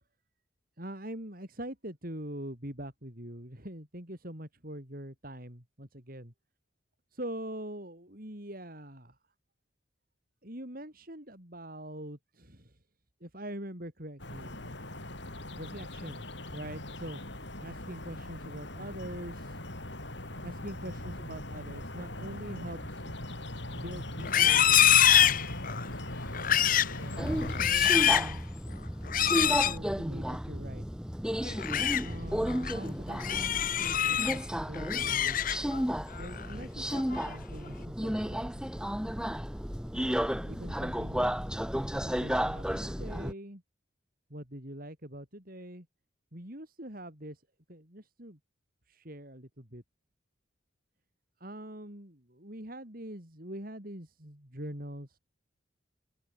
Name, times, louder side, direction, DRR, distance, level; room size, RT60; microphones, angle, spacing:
voice 1, 0.8-6.3 7.1-9.1 10.4-12.7 13.2-14.7 15.6-16.2 16.5-17.2 17.6-20.0 20.4-23.2 23.7-25.1 26.6-28.4 28.7-30.8 32.0-35.5 36.2-39.0 40.0-41.3 42.0-43.6 44.3-45.9 46.3-47.4 47.7-48.4 48.9-49.8 51.4-55.2, right 1 dB, 45° right, 5.0 m, -44 dB
sound 1, 14.2-27.7, left 1 dB, 60° left, 5.9 m, -40 dB
Livestock farm animals working animals, 24.2-25.9 26.3-27.0 27.4-28.3 29.1-29.8 31.4-32.0 32.5-32.7 33.2-34.4 34.7-35.8 36.2-36.5 36.9-37.4, left 10 dB, 45° left, 0.8 m, -25 dB
Subway metro underground, 27.2-43.3, equal, 5° right, 2.5 m, -33 dB
open air
head